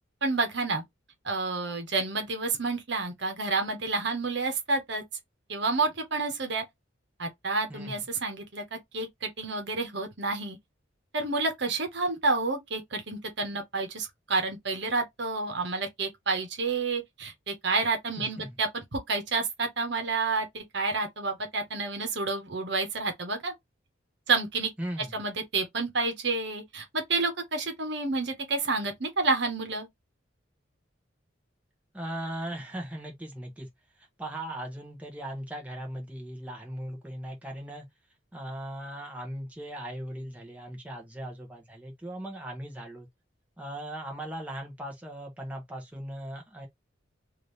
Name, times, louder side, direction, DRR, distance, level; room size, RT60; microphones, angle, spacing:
voice 1, 0.2-0.8 1.2-5.0 5.5-6.6 7.2-10.6 11.1-23.5 24.3-24.7 25.1-29.9, right 3 dB, 60° right, 1.1 m, -29 dB
voice 2, 18.2-18.5 24.8-25.1 31.9-33.7 34.0-37.9 38.3-43.1 43.6-46.7, right 1 dB, 5° right, 1.0 m, -38 dB
3.6 x 2.7 x 3.2 m
head